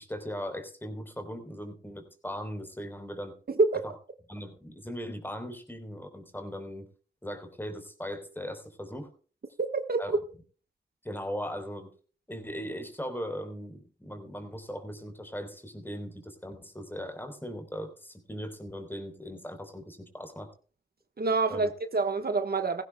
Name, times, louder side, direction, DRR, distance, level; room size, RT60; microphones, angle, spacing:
voice 1, 0.0-3.4 4.3-6.9 7.2-9.1 10.0-10.1 11.0-11.9 12.3-20.5 21.5-21.7, equal, 10° left, 3.8 m, -39 dB
voice 2, 3.5-3.8 9.6-10.2 21.2-22.8, right 3 dB, 55° right, 1.2 m, -27 dB
18.0 x 15.5 x 2.2 m
cardioid pair, 55°, 19 cm